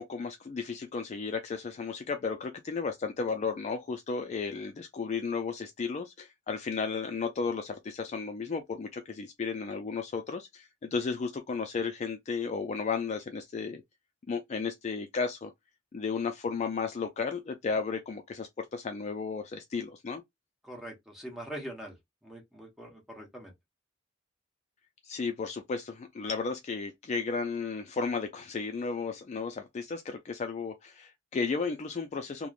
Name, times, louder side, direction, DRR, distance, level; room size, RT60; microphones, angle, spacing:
voice 1, 0.0-13.8 14.3-15.5 15.9-20.2 25.0-32.5, left 5 dB, 35° left, 0.3 m, -34 dB
voice 2, 20.6-22.0 22.2-23.5, right 1 dB, ahead, 1.0 m, -43 dB
3.1 x 2.1 x 2.3 m
head